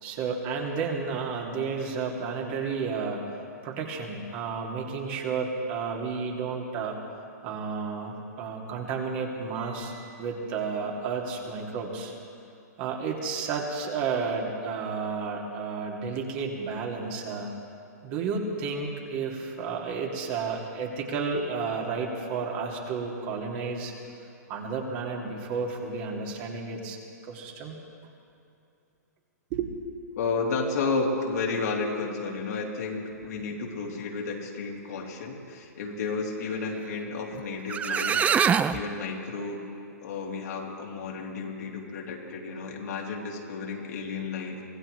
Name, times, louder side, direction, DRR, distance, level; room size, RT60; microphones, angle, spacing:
voice 1, 0.0-3.2 3.6-7.0 7.4-12.1 12.8-17.5 18.0-23.9 24.5-27.8 29.5-29.7, right 5 dB, 40° right, -1 dB, 2.7 m, -32 dB
voice 2, 30.2-38.3 38.7-39.6 40.0-44.6, left 4 dB, 65° left, -1 dB, 2.8 m, -32 dB
sound 1, 37.4-37.5 37.7-38.8, right 7 dB, 15° right, 0.4 m, -23 dB
24.5 x 16.5 x 3.3 m, 2.6 s
hypercardioid pair, 125°, 9 cm